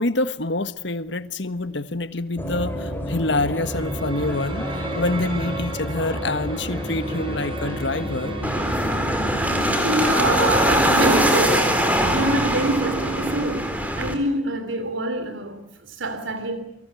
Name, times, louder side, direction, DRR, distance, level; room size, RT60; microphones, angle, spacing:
voice 1, 0.0-8.4, left 2 dB, 60° left, 1.5 m, -26 dB
sound 1, 2.4-9.7, equal, 10° left, 4.8 m, -30 dB
sound 2, 3.6-14.0, right 1 dB, 25° right, 5.0 m, -35 dB
sound 3, 8.4-14.1, equal, 10° right, 4.2 m, -22 dB
voice 2, 9.4-16.6, right 2 dB, 75° right, 3.2 m, -26 dB
28.5 x 24.5 x 8.5 m
head